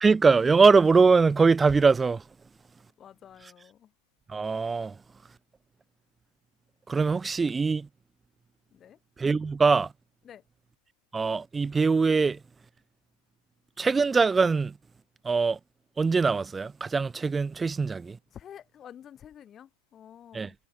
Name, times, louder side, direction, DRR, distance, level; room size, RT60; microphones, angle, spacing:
voice 1, 0.0-2.2 4.3-5.0 6.9-7.9 9.2-9.9 11.1-12.4 13.8-14.7 15.2-15.6 16.0-18.2 20.3-20.5, right 4 dB, 15° right, 0.3 m, -22 dB
voice 2, 3.0-3.9 8.7-9.0 10.2-10.4 18.3-20.5, left 9 dB, 25° left, 2.1 m, -49 dB
figure-of-eight pair, 90°, 0 cm